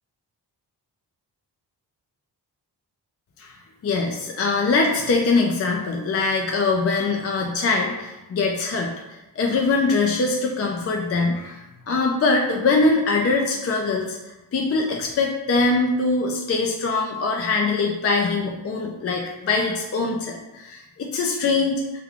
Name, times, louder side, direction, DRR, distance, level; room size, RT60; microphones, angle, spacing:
voice 1, 3.8-21.8, left 3 dB, 35° left, 0 dB, 0.4 m, -23 dB
3.4 x 2.3 x 3.6 m, 1.0 s
wide cardioid pair, 100°, 41 cm